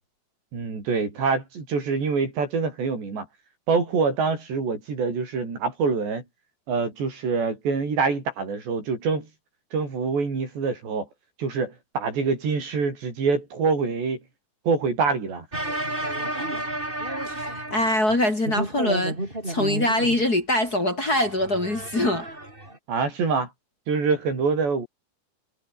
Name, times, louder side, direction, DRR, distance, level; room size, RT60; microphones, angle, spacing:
voice 1, 0.5-3.3 3.7-6.2 6.7-9.3 9.7-11.1 11.4-14.2 14.7-15.5 22.9-23.5 23.9-24.9, right 4 dB, 85° right, 9.7 m, -25 dB
sound 1, 15.5-18.2 18.4-20.2 21.0-22.8, right 1 dB, 10° right, 6.0 m, -31 dB
voice 2, 17.3-19.2 19.5-22.3, left 1 dB, 25° left, 3.8 m, -23 dB
omnidirectional pair, 4.8 m